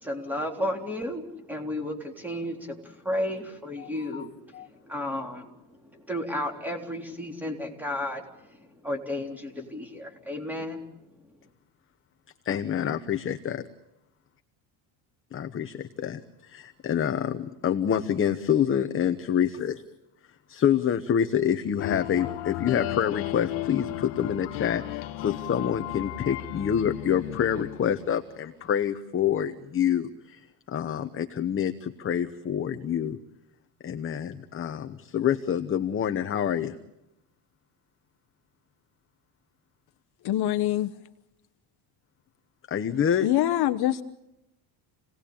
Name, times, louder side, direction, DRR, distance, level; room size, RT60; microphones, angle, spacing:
voice 1, 0.0-4.3 4.9-5.5 6.1-8.2 8.8-10.8, left 1 dB, 5° right, 3 dB, 3.7 m, -32 dB
voice 2, 3.8-4.3 4.5-4.7 12.4-13.7 15.3-19.8 20.5-33.2 33.8-36.8 42.7-43.3, left 9 dB, 25° left, 8 dB, 1.0 m, -27 dB
sound 1, 21.8-28.4, left 16 dB, 85° left, 1.5 m, -35 dB
voice 3, 40.2-40.9 43.2-44.0, left 13 dB, 50° left, 10 dB, 1.1 m, -24 dB
29.0 x 18.5 x 8.7 m, 0.91 s
cardioid pair, 160°, 49 cm